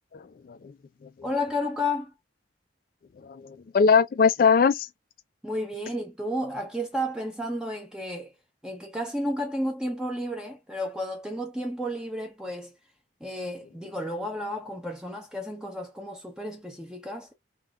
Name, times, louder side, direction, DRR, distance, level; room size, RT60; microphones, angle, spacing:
voice 1, 0.1-0.6 3.2-4.9, left 5 dB, 50° left, 0.3 m, -21 dB
voice 2, 1.2-2.1 5.4-8.3 8.6-12.7 13.2-17.3, left 1 dB, 5° right, 0.6 m, -32 dB
3.6 x 2.3 x 2.3 m
head